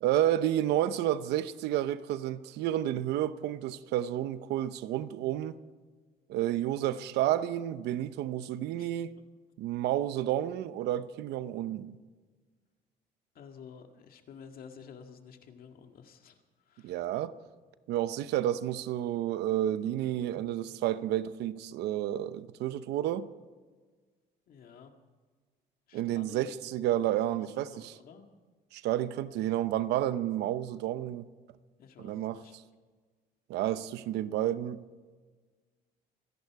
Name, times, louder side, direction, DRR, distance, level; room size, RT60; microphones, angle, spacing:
voice 1, 0.0-5.6 6.3-9.2 9.6-12.0 16.8-17.3 17.9-23.3 25.9-28.0 28.7-31.3 32.0-32.4 33.5-34.8, right 12 dB, 85° right, 14 dB, 0.8 m, -30 dB
voice 2, 8.3-8.9 13.4-16.4 16.7-17.0 24.5-24.9 25.9-28.3 31.8-32.5, left 6 dB, 60° left, 5 dB, 1.9 m, -52 dB
25.5 x 11.0 x 4.8 m, 1.4 s
cardioid pair, 110°, 17 cm